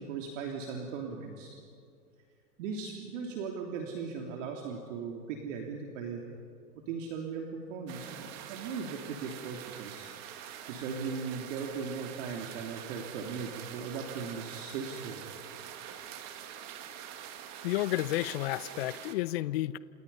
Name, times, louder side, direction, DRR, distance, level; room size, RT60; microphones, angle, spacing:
voice 1, 0.0-1.6 2.6-6.2 6.9-15.2, right 5 dB, 45° right, 1 dB, 3.1 m, -38 dB
sound 1, 7.9-19.1, right 10 dB, 30° right, 2.0 m, -45 dB
voice 2, 17.6-19.8, left 16 dB, 40° left, 18 dB, 0.7 m, -31 dB
30.0 x 28.0 x 5.6 m, 2.3 s
hypercardioid pair, 135°, 50 cm